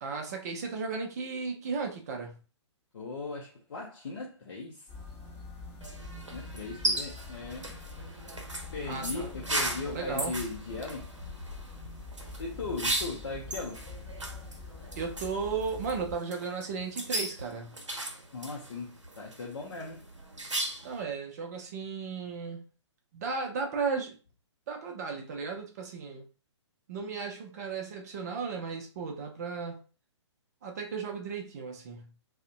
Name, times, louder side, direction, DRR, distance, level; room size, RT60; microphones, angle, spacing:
voice 1, 0.0-2.4 8.9-9.3 9.9-10.3 15.0-17.7 20.8-22.6 23.1-24.2 24.7-26.3 26.9-29.8 30.6-32.1, right 5 dB, 35° right, 0.4 m, -35 dB
voice 2, 2.9-4.9 6.3-7.7 8.7-11.1 12.4-13.9 18.3-20.1, left 4 dB, 55° left, 0.5 m, -38 dB
sound 1, 4.9-16.2, left 3 dB, 15° left, 0.7 m, -45 dB
sound 2, 5.8-21.0, right 1 dB, 80° right, 0.6 m, -37 dB
2.4 x 2.1 x 2.4 m
figure-of-eight pair, 125°, 15 cm